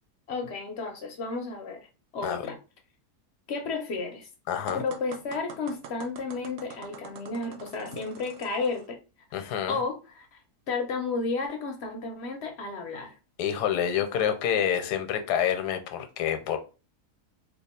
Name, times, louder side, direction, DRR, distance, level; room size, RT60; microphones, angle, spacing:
voice 1, 0.3-1.8 2.1-2.6 3.5-4.3 4.7-9.0 9.7-10.4 10.7-13.1, left 4 dB, 65° left, 0.7 m, -32 dB
voice 2, 4.5-4.8 9.3-9.8 13.4-16.6, left 9 dB, 85° left, 1.2 m, -27 dB
sound 1, 4.7-8.9, right 7 dB, 70° right, 0.6 m, -45 dB
2.8 x 2.3 x 4.1 m
omnidirectional pair, 1.7 m